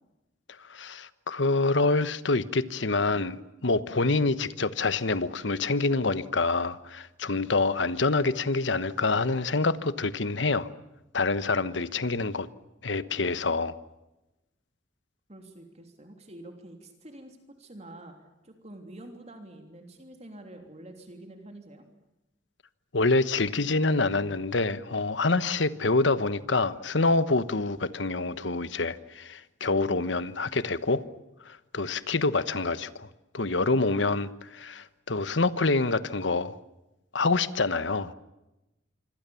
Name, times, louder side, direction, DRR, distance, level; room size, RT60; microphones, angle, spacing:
voice 1, 0.7-10.7 11.1-12.5 12.8-13.8 22.9-31.0 31.4-33.1 33.3-36.6 37.1-38.1, left 3 dB, 75° left, 1.2 m, -26 dB
voice 2, 15.3-18.2 18.4-21.8, right 1 dB, 35° right, 3.1 m, -47 dB
26.5 x 25.5 x 7.1 m
head